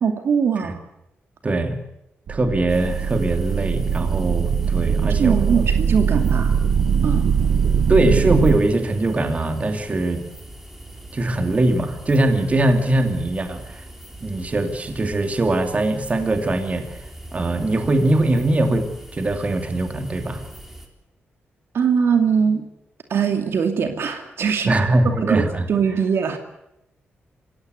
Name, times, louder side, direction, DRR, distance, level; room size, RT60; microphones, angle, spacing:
voice 1, 0.0-0.8 5.2-6.6 6.9-7.3 21.7-22.6 23.1-24.7 25.2-26.4, right 6 dB, 70° right, 6 dB, 2.5 m, -21 dB
voice 2, 1.4-1.8 2.3-5.6 7.9-10.2 11.1-13.9 14.2-17.0 17.3-20.4 24.7-25.7, right 2 dB, 35° right, 6 dB, 2.7 m, -21 dB
sound 1, 2.3-8.6, right 7 dB, 85° right, 1.1 m, -21 dB
sound 2, 2.7-20.9, right 1 dB, 5° right, 4.0 m, -41 dB
26.0 x 16.5 x 8.1 m, 0.86 s
cardioid pair, 95°, 4 cm